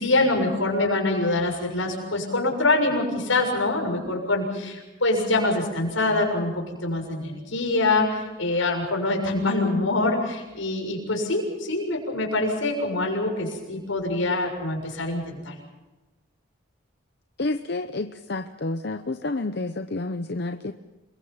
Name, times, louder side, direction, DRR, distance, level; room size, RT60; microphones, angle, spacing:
voice 1, 0.0-15.5, left 2 dB, 80° left, 2 dB, 6.8 m, -25 dB
voice 2, 17.4-20.7, left 2 dB, 55° left, 8 dB, 0.7 m, -29 dB
28.0 x 23.0 x 5.7 m, 1.1 s
head